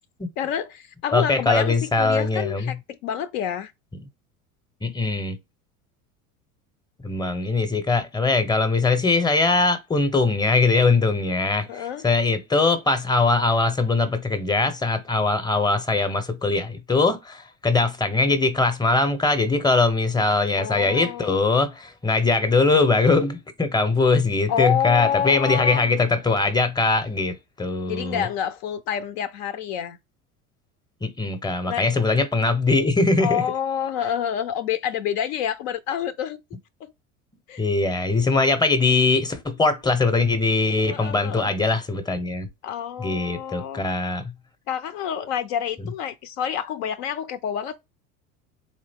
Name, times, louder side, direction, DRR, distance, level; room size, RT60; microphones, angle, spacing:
voice 1, 0.4-3.7 11.7-12.1 20.6-21.4 24.5-25.9 27.9-30.0 31.7-31.9 33.2-36.4 36.8-36.9 37.5-37.6 40.8-41.5 42.6-43.8 44.7-47.8, left 9 dB, 60° left, 0.5 m, -28 dB
voice 2, 1.1-2.7 4.8-5.4 7.0-28.3 31.0-33.4 37.6-42.5 43.0-44.2, left 3 dB, 10° left, 0.7 m, -21 dB
3.7 x 2.6 x 3.4 m
hypercardioid pair, 80°, 44 cm